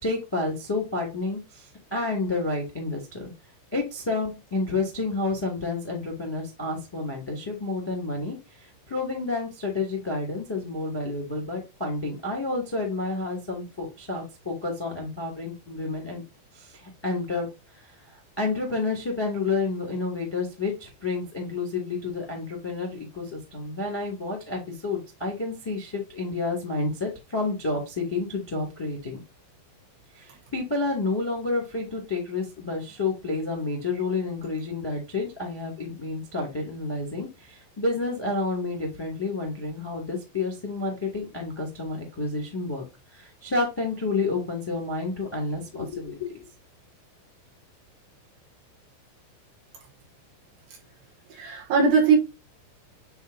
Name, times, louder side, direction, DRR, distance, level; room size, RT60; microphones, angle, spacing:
voice 1, 0.0-3.3 3.7-16.2 16.5-17.5 17.7-29.2 30.1-42.8 43.1-46.4, left 3 dB, 15° left, 0.8 m, -30 dB
voice 2, 51.3-52.2, right 5 dB, 70° right, 2.8 m, -20 dB
9.9 x 3.5 x 2.8 m
omnidirectional pair, 5.7 m